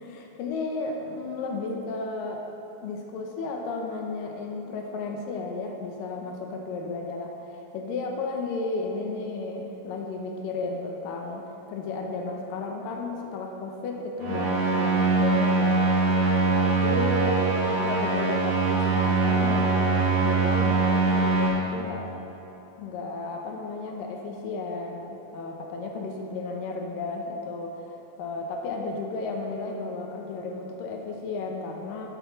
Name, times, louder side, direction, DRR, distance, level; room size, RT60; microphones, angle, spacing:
voice 1, 0.0-2.4 2.8-15.9 16.6-22.1 22.8-32.1, left 3 dB, 75° left, 2 dB, 2.2 m, -33 dB
sound 1, 14.2-21.5, right 3 dB, 85° right, 4.2 m, -23 dB
10.5 x 9.2 x 4.0 m, 3.0 s
omnidirectional pair, 4.4 m